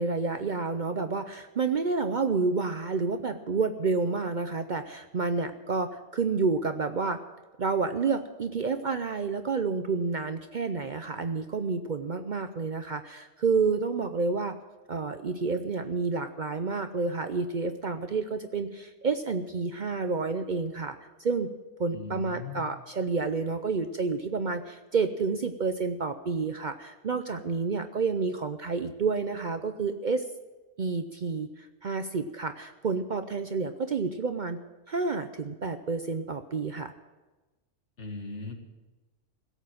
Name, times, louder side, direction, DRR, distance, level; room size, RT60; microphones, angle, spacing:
voice 1, 0.0-7.2 7.6-14.6 14.9-20.9 21.2-21.5 21.8-30.2 30.8-34.6 34.9-36.9, right 4 dB, 45° right, 9 dB, 0.7 m, -29 dB
voice 2, 21.9-22.7 38.0-38.5, left 4 dB, 65° left, 4 dB, 2.1 m, -38 dB
16.5 x 8.2 x 8.9 m, 1.2 s
omnidirectional pair, 1.3 m